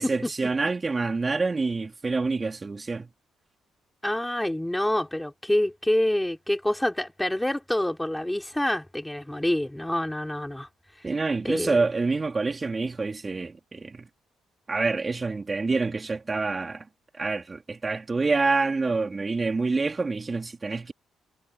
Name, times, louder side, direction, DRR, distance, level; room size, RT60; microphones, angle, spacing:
voice 1, 0.0-3.1 11.0-14.1 14.7-16.9 17.1-20.9, right 3 dB, 25° right, 4.3 m, -27 dB
voice 2, 4.0-10.7 11.4-11.7, left 1 dB, 5° left, 4.3 m, -27 dB
cardioid pair, 90°, 0 cm